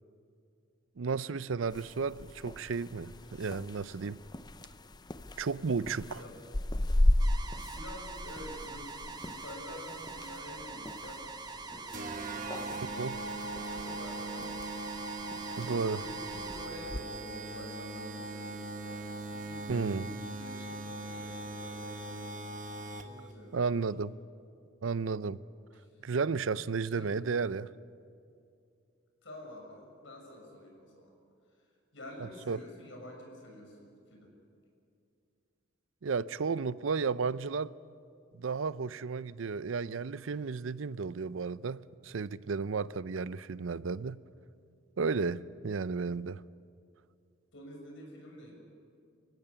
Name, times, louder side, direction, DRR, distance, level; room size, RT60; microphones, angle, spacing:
voice 1, 1.0-4.2 5.4-6.2 13.0-13.2 15.6-16.0 19.7-20.0 23.5-24.1 24.8-25.4 26.0-27.7 32.5-32.6 36.0-37.7 38.3-44.2 45.0-46.4, right 5 dB, 80° right, 0.5 m, -33 dB
sound 1, 1.7-17.0, left 1 dB, 20° left, 0.6 m, -36 dB
sound 2, 7.2-16.7, right 4 dB, 20° right, 1.1 m, -44 dB
voice 2, 7.7-14.9 15.6-22.5 23.0-23.9 25.3-25.5 25.8-26.1 26.8-27.1 29.2-31.2 31.5-31.6 31.9-34.3 47.5-48.5, left 1 dB, 70° left, 6.5 m, -49 dB
sound 3, 11.9-23.3, right 2 dB, 40° right, 1.2 m, -40 dB
25.0 x 16.0 x 9.9 m
head